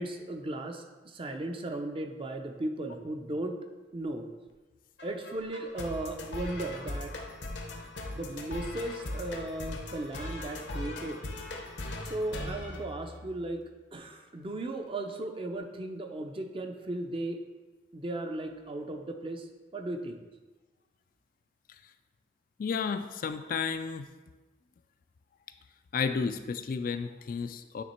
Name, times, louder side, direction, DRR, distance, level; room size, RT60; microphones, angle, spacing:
voice 1, 0.0-3.6 3.9-4.3 5.0-7.1 8.1-11.3 12.0-13.6 13.9-17.4 17.9-20.2, right 2 dB, 30° right, 5 dB, 0.5 m, -36 dB
sound 1, 5.0-13.6, left 2 dB, 75° left, 0.8 m, -40 dB
voice 2, 22.6-24.1 25.9-27.8, left 5 dB, 50° left, 9 dB, 0.3 m, -32 dB
9.2 x 3.3 x 4.4 m, 1.2 s
head